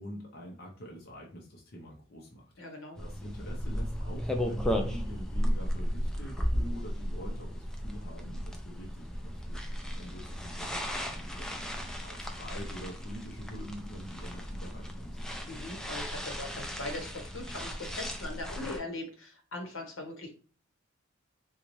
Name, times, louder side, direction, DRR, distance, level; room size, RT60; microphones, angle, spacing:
voice 1, 0.0-15.2, equal, 50° left, -2 dB, 0.7 m, -46 dB
voice 2, 2.6-3.0 15.5-20.3, left 2 dB, 85° left, 2 dB, 1.0 m, -40 dB
sound 1, 3.0-18.8, equal, 5° left, 0.4 m, -35 dB
3.9 x 2.3 x 3.0 m, 0.39 s
head